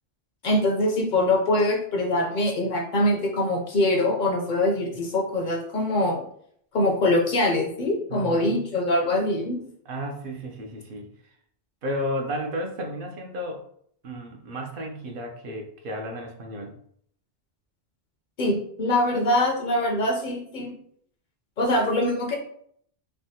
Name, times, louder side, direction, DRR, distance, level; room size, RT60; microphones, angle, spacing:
voice 1, 0.4-6.2 6.7-9.6 18.4-20.7 21.6-22.4, left 1 dB, 60° left, 1 dB, 0.6 m, -23 dB
voice 2, 8.1-8.7 9.9-11.1 11.8-13.6 14.0-16.7, equal, 65° right, 2 dB, 0.7 m, -33 dB
3.3 x 2.1 x 2.7 m, 0.64 s
omnidirectional pair, 1.0 m